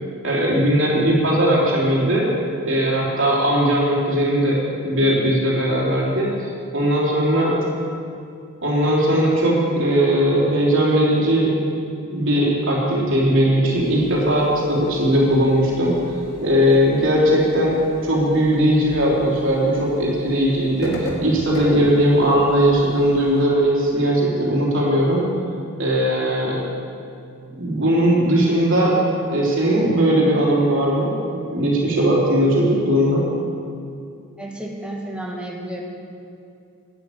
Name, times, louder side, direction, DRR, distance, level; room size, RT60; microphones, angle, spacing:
voice 1, 0.2-2.3 2.6-6.3 6.7-7.6 8.6-11.7 12.1-16.0 16.4-17.8 18.0-25.2 25.8-26.6 27.6-28.9 29.3-33.2, equal, 60° right, -4 dB, 3.5 m, -19 dB
sound 1, 13.7-23.4, left 1 dB, 65° left, 2.3 m, -38 dB
voice 2, 34.4-35.8, right 1 dB, 5° right, -2 dB, 2.0 m, -31 dB
12.0 x 10.0 x 8.4 m, 2.5 s
head